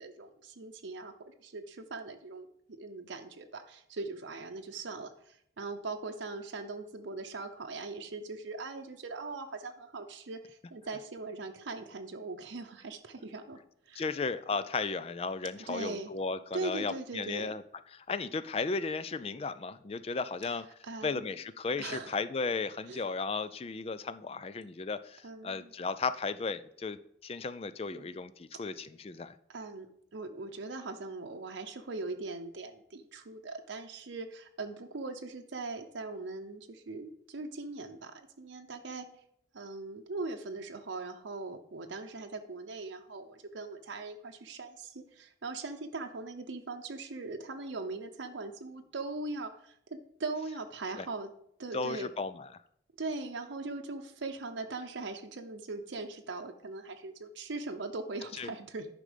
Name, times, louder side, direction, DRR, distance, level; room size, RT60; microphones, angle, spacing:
voice 1, 0.0-2.5 2.8-13.6 13.9-14.0 15.7-16.1 16.5-17.5 20.8-21.3 21.8-22.2 22.9-23.0 25.2-25.7 27.9-28.1 29.5-29.9 30.1-39.1 39.5-51.3 51.6-52.1 53.0-58.9, right 3 dB, 85° right, 4 dB, 0.7 m, -40 dB
voice 2, 13.9-17.6 17.9-29.4 51.0-51.1 51.7-52.5 58.3-58.5, left 4 dB, 30° left, 14 dB, 0.3 m, -35 dB
9.9 x 5.2 x 5.1 m, 0.71 s
head